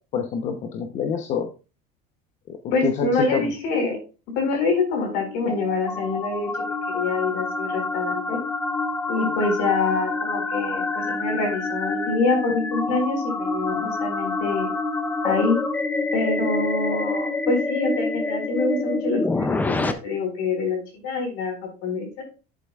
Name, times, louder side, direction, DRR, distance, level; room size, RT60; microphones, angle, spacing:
voice 1, 0.1-1.5 2.8-3.5, left 6 dB, 40° left, 4 dB, 0.9 m, -26 dB
voice 2, 2.7-4.0 4.4-6.5 6.9-8.4 9.1-14.7 15.2-15.6 16.1-21.5 21.8-22.2, left 3 dB, 60° left, 3 dB, 4.4 m, -25 dB
sound 1, 4.8-19.9, left 3 dB, 10° left, 0.4 m, -27 dB
11.5 x 7.6 x 2.4 m, 0.32 s
cardioid pair, 170°, 19 cm